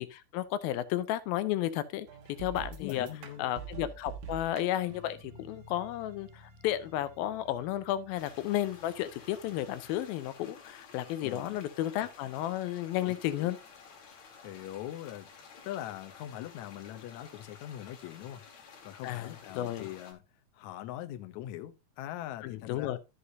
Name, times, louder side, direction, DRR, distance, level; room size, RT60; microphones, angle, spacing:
voice 1, 0.0-2.1 2.4-3.1 3.4-13.6 19.0-19.9 22.4-23.0, left 13 dB, 90° left, 2.6 m, -33 dB
sound 1, 2.1-10.0, right 6 dB, 65° right, 2.5 m, -48 dB
voice 2, 2.8-3.5 11.2-11.6 12.9-13.5 14.2-15.3 15.6-20.2 20.5-23.0, left 13 dB, 70° left, 1.8 m, -42 dB
sound 2, 8.2-20.1, left 5 dB, 55° left, 2.7 m, -53 dB
12.5 x 6.5 x 2.7 m
omnidirectional pair, 4.1 m